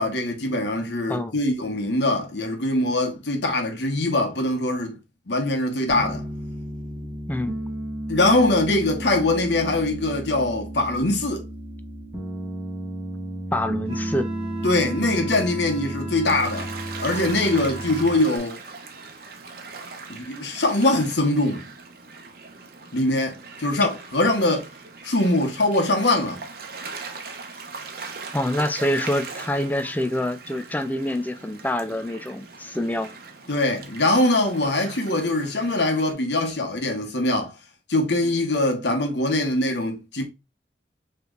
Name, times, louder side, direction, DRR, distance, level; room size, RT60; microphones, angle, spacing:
voice 1, 0.0-5.0 5.3-6.3 8.1-11.4 14.6-16.7 17.0-18.6 20.1-21.7 22.9-24.7 25.0-26.4 33.5-37.5 37.9-40.2, left 2 dB, 85° left, 1.2 m, -22 dB
Piano, 5.9-18.4, right 1 dB, 10° right, 1.4 m, -33 dB
voice 2, 13.5-14.3 28.3-33.1, left 1 dB, 10° left, 0.4 m, -26 dB
Wind instrument woodwind instrument, 13.9-18.3, right 3 dB, 35° right, 1.4 m, -38 dB
Gull seagull / Waves surf, 16.3-36.1, right 4 dB, 55° right, 0.8 m, -40 dB
5.0 x 3.3 x 2.5 m
head